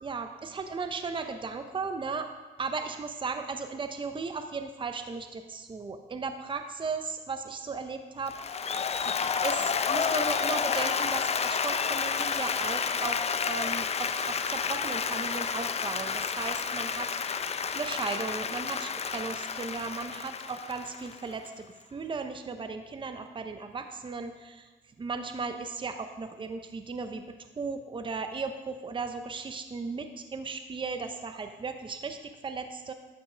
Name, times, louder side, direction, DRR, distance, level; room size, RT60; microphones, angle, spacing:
voice 1, 0.0-2.3 2.6-8.7 9.0-17.4 17.7-24.7 25.0-27.2 27.6-32.9, right 4 dB, 25° right, 7 dB, 0.7 m, -36 dB
Applause, 8.3-21.5, left 6 dB, 30° left, 0.5 m, -30 dB
12.0 x 7.9 x 3.4 m, 1.3 s
cardioid pair, 90°, 20 cm